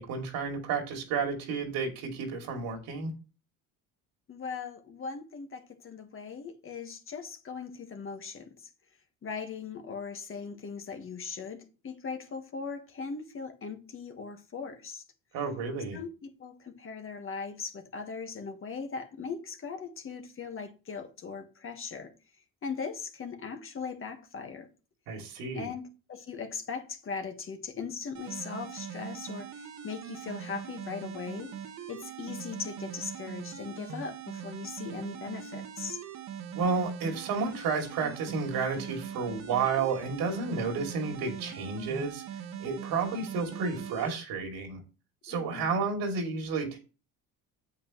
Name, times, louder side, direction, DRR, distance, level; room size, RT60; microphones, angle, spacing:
voice 1, 0.0-3.1 15.3-16.0 25.1-25.7 36.5-42.2 42.6-44.8 45.2-46.8, right 4 dB, 75° right, 2.8 m, -31 dB
voice 2, 4.3-8.5 9.2-15.0 15.9-22.1 22.6-24.7 25.5-31.5 31.9-36.0 45.3-45.9, left 5 dB, 35° left, 1.6 m, -39 dB
sound 1, 28.1-44.1, right 8 dB, 50° right, 1.3 m, -41 dB
8.5 x 7.9 x 3.1 m
cardioid pair, 120°, 36 cm